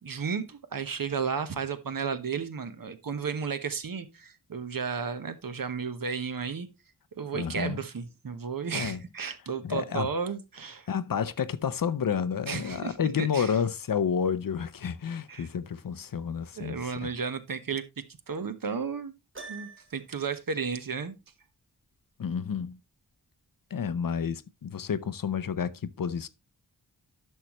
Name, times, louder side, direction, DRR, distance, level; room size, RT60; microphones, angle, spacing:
voice 1, 0.0-6.7 7.2-10.9 12.5-13.5 15.3-15.5 16.6-19.1 19.5-21.2, right 5 dB, 55° right, 1.1 m, -33 dB
voice 2, 7.3-7.8 8.7-9.0 9.6-10.1 10.9-17.1 22.2-22.8 23.7-26.3, left 7 dB, 55° left, 0.7 m, -30 dB
Piano, 19.3-20.2, right 4 dB, 30° right, 1.2 m, -44 dB
11.0 x 6.5 x 3.0 m
wide cardioid pair, 90°, 39 cm